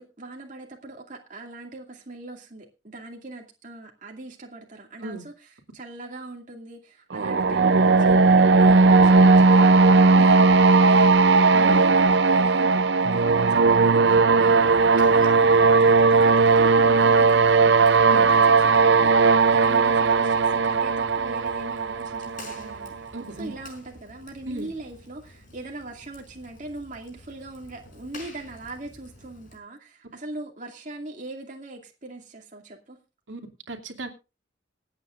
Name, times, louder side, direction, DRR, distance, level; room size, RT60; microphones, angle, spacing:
voice 1, 0.0-22.9 23.3-33.0, right 2 dB, 40° right, 1 dB, 2.4 m, -41 dB
sound 1, 7.1-22.9, right 4 dB, 65° right, 0.6 m, -17 dB
voice 2, 11.5-11.9 18.0-18.3 23.1-23.5 24.5-24.7 33.3-33.4 33.7-34.1, right 2 dB, 85° right, 3 dB, 2.6 m, -35 dB
Fire, 14.7-29.6, left 1 dB, 45° left, 5.4 m, -50 dB
26.5 x 8.9 x 2.6 m, 0.30 s
head